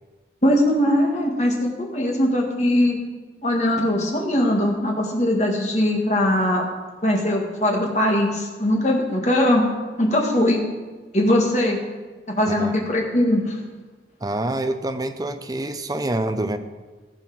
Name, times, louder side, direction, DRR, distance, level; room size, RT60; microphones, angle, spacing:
voice 1, 0.4-3.0 3.4-6.6 7.0-9.6 10.0-10.6 11.1-11.8 12.3-13.6, left 1 dB, 40° left, 0 dB, 1.8 m, -20 dB
voice 2, 14.2-16.6, right 1 dB, 20° right, 8 dB, 0.6 m, -26 dB
15.5 x 6.4 x 6.1 m, 1.3 s
head